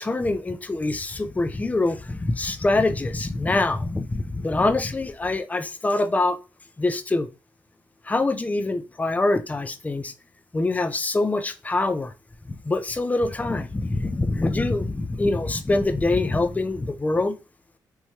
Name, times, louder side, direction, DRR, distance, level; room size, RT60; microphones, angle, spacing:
voice 1, 0.0-6.4 6.8-7.3 8.1-10.1 10.5-12.1 12.5-17.3, left 2 dB, 20° left, 0.4 m, -24 dB
3.1 x 2.2 x 2.8 m
supercardioid pair, 60°, 8 cm